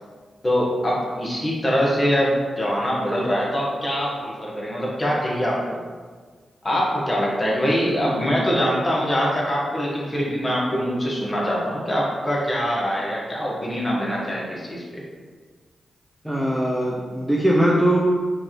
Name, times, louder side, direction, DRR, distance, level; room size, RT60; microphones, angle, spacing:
voice 1, 0.4-5.8 6.6-15.0, equal, 25° left, -5 dB, 1.5 m, -23 dB
voice 2, 16.2-18.0, right 1 dB, ahead, -4 dB, 0.7 m, -20 dB
5.0 x 2.7 x 3.1 m, 1.5 s
supercardioid pair, 45°, 0 cm